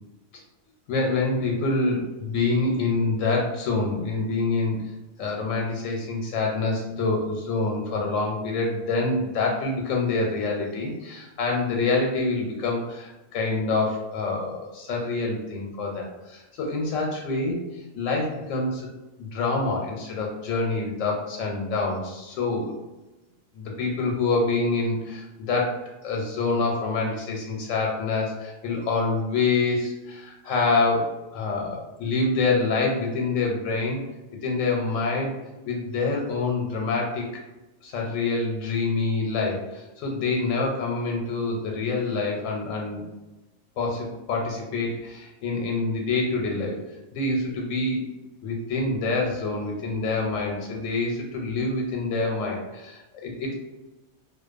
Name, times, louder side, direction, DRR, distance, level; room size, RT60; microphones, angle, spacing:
voice 1, 0.9-4.8 5.2-17.6 17.9-18.9 19.2-22.7 23.5-34.0 34.4-35.4 35.7-37.2 37.8-43.0 43.8-46.8 47.1-48.0 48.4-53.5, left 3 dB, 90° left, 0 dB, 1.0 m, -26 dB
2.5 x 2.1 x 2.4 m, 1.0 s
omnidirectional pair, 1.3 m